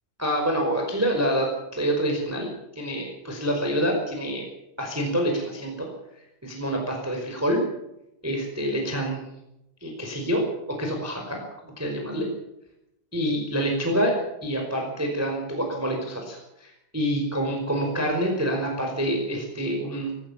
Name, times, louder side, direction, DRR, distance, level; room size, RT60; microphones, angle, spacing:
voice 1, 0.2-2.5 2.7-4.5 4.8-5.9 6.4-7.6 8.2-9.2 9.8-11.4 11.8-12.3 13.1-14.1 14.4-20.1, equal, 5° right, 1 dB, 4.3 m, -27 dB
23.0 x 16.5 x 7.2 m, 0.86 s
omnidirectional pair, 5.8 m